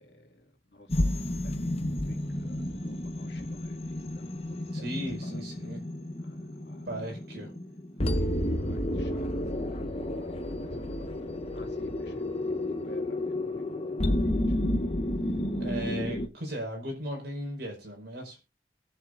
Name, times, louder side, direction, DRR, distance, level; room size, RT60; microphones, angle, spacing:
voice 1, 0.0-5.7 6.2-6.9 8.0-14.8 15.2-15.7, left 1 dB, 70° left, 2.2 m, -52 dB
sound 1, 0.9-16.3, left 1 dB, 35° left, 1.2 m, -31 dB
voice 2, 4.7-5.8 6.9-7.5 15.6-18.4, equal, 65° right, 5.2 m, -36 dB
21.5 x 7.5 x 2.6 m
head